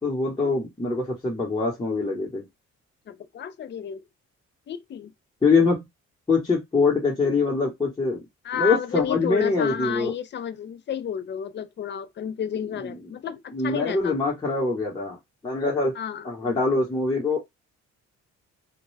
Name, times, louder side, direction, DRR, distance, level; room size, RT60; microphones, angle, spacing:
voice 1, 0.0-2.4 5.4-5.8 6.3-8.2 8.5-10.1 12.8-13.0 13.5-15.2 15.4-15.9 16.2-17.4, left 3 dB, 15° left, 1.0 m, -24 dB
voice 2, 3.1-4.0 4.7-5.1 8.4-14.2 16.0-16.6, left 8 dB, 40° left, 0.4 m, -31 dB
2.2 x 2.1 x 3.2 m
cardioid pair, 90°, 30 cm